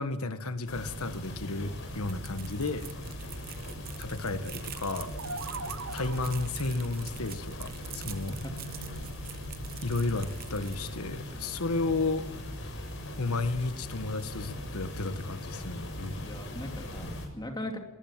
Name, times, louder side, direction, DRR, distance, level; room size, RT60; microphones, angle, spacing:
voice 1, 0.0-2.9 4.0-5.1 5.9-8.3 9.8-12.2 13.2-16.3, left 3 dB, 85° left, 10 dB, 1.4 m, -33 dB
sound 1, 0.7-17.3, left 1 dB, 60° left, 6.8 m, -40 dB
sound 2, 1.9-11.2, right 8 dB, 45° right, 0.9 m, -46 dB
sound 3, 4.8-6.6, right 3 dB, 65° right, 1.3 m, -40 dB
voice 2, 8.3-8.6 16.2-17.8, left 1 dB, 20° left, 3 dB, 2.8 m, -39 dB
20.5 x 20.0 x 7.4 m, 1.0 s
head